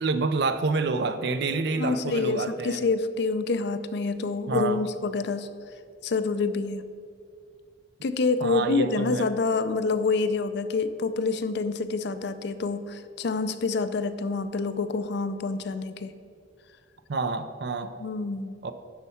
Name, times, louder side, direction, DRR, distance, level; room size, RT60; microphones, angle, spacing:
voice 1, 0.0-2.8 4.5-4.8 8.4-9.3 17.1-18.0 18.6-18.7, right 3 dB, 60° right, 10 dB, 0.5 m, -28 dB
voice 2, 1.8-5.5 6.0-6.8 8.0-16.1 18.0-18.6, left 3 dB, 60° left, 11 dB, 0.5 m, -27 dB
11.5 x 4.6 x 5.6 m, 2.2 s
head